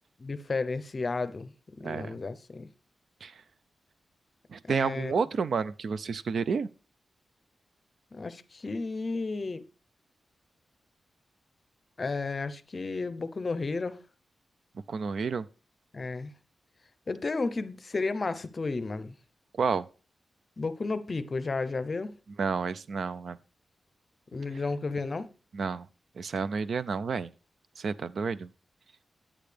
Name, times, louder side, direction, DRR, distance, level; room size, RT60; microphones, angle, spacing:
voice 1, 0.2-2.7 4.7-5.1 8.1-9.6 12.0-14.0 15.9-16.3 17.1-19.1 20.6-22.2 24.3-25.3, left 3 dB, 35° left, 0.6 m, -33 dB
voice 2, 1.8-2.1 3.2-3.4 4.5-6.7 14.9-15.5 19.6-19.9 22.4-23.4 25.5-25.9 26.2-27.3 27.8-28.5, right 5 dB, 60° right, 0.4 m, -30 dB
10.5 x 8.8 x 3.3 m
wide cardioid pair, 170°, 0 cm